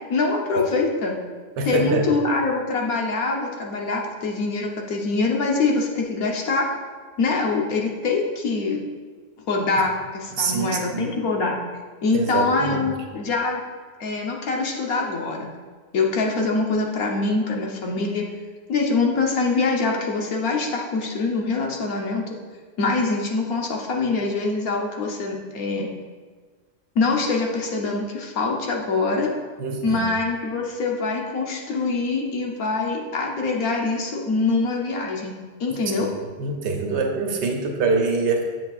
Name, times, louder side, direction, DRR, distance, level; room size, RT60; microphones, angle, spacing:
voice 1, 0.1-1.2 1.6-6.7 7.2-8.8 9.5-11.6 12.0-13.6 14.0-15.5 15.9-18.2 18.7-22.4 22.8-25.9 26.9-29.3 29.8-36.1, left 3 dB, 60° left, 0 dB, 1.2 m, -24 dB
voice 2, 1.6-2.1 10.4-11.1 12.1-12.8 29.6-30.1 36.4-38.4, right 4 dB, 85° right, 3 dB, 1.5 m, -24 dB
7.8 x 7.4 x 2.4 m, 1.5 s
omnidirectional pair, 1.8 m